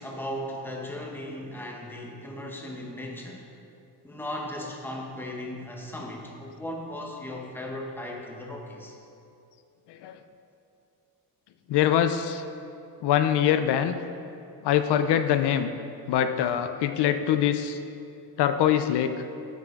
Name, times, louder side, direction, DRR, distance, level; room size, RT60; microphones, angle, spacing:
voice 1, 0.0-3.4 4.0-8.9, left 1 dB, 5° left, 0 dB, 0.8 m, -37 dB
voice 2, 11.7-12.4 13.0-14.0 14.6-15.7 16.1-17.8 18.4-19.2, left 10 dB, 80° left, 10 dB, 0.5 m, -23 dB
8.4 x 8.3 x 3.6 m, 2.6 s
cardioid pair, 165°, 40 cm